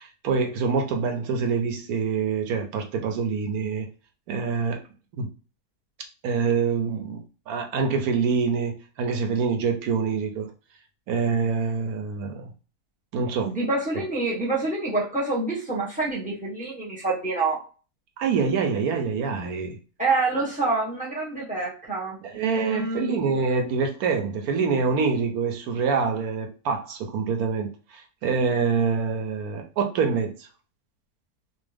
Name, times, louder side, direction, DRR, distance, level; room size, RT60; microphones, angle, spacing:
voice 1, 0.0-3.9 4.3-4.8 5.1-5.3 6.2-10.5 11.1-12.5 13.1-13.5 18.2-19.8 22.2-30.5, right 5 dB, 70° right, 1.0 m, -26 dB
voice 2, 13.4-17.6 20.0-23.2, right 3 dB, 5° right, 0.8 m, -27 dB
3.0 x 2.0 x 3.3 m
omnidirectional pair, 1.8 m